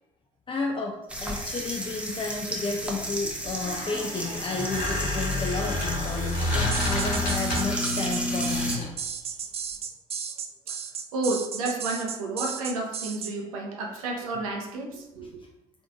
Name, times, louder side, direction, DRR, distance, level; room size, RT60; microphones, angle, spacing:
voice 1, 0.5-9.4, left 3 dB, 30° left, 0 dB, 0.4 m, -32 dB
sound 1, 1.1-8.8, equal, 5° right, 0.7 m, -32 dB
Squeak, 3.4-7.8 8.4-9.0, left 1 dB, 65° left, 1.3 m, -30 dB
sound 2, 6.7-13.3, right 7 dB, 35° right, 0.4 m, -34 dB
voice 2, 11.1-15.3, right 2 dB, 80° right, 0 dB, 0.6 m, -31 dB
3.5 x 2.5 x 2.4 m, 0.91 s
figure-of-eight pair, 50°, 17 cm